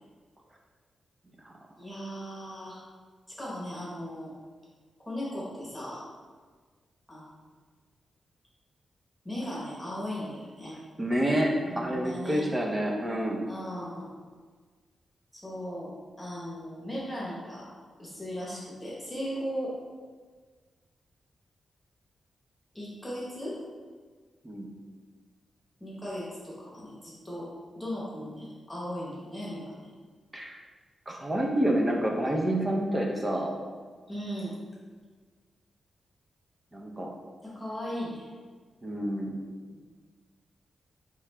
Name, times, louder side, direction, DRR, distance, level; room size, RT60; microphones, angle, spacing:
voice 1, 1.8-2.8 3.4-4.3 5.1-6.0 7.1-7.3 9.2-10.8 11.6-12.4 13.5-14.1 15.3-15.9 16.2-17.7 18.0-19.8 22.7-23.6 25.8-27.5 27.7-29.9 34.1-34.5 37.4-38.3 39.7-39.8, equal, 5° left, -7 dB, 0.9 m, -37 dB
voice 2, 11.0-13.4 24.4-24.7 30.3-30.6 31.1-33.6 36.7-37.1 38.8-39.3, right 1 dB, 20° right, -1 dB, 0.5 m, -28 dB
4.7 x 3.1 x 3.3 m, 1.5 s
wide cardioid pair, 170°, 0 cm